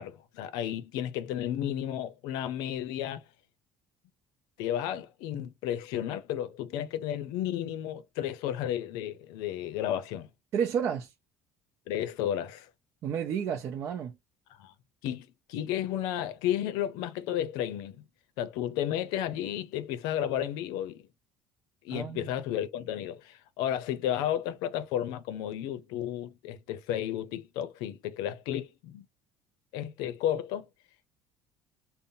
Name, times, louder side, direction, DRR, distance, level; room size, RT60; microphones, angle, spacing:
voice 1, 0.0-3.2 4.6-10.3 11.9-12.7 14.6-14.7 15.0-18.0 18.4-21.1 21.8-29.1 29.7-30.7, left 11 dB, 85° left, 0.6 m, -33 dB
voice 2, 10.5-11.1 13.0-14.2 21.9-22.3, right 8 dB, 45° right, 0.5 m, -31 dB
5.3 x 2.1 x 2.6 m
cardioid pair, 155°, 7 cm